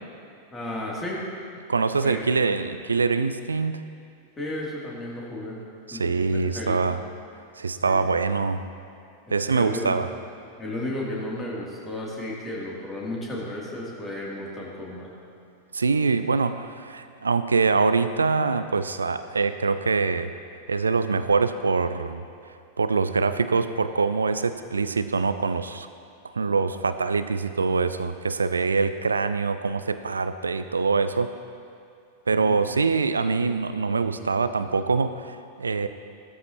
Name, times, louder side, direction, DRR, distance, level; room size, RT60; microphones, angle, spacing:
voice 1, 0.5-1.3 2.0-2.2 4.4-5.6 5.9-6.8 7.8-8.0 9.3-9.9 10.6-15.1 32.3-32.7, left 1 dB, 15° left, -4 dB, 2.9 m, -33 dB
voice 2, 1.7-3.8 5.9-7.0 7.6-8.6 9.3-10.1 15.7-20.3 20.7-25.9 26.2-31.3 32.3-35.9, right 4 dB, 75° right, 11 dB, 0.4 m, -24 dB
15.5 x 13.0 x 3.0 m, 2.4 s
figure-of-eight pair, 90°, 0 cm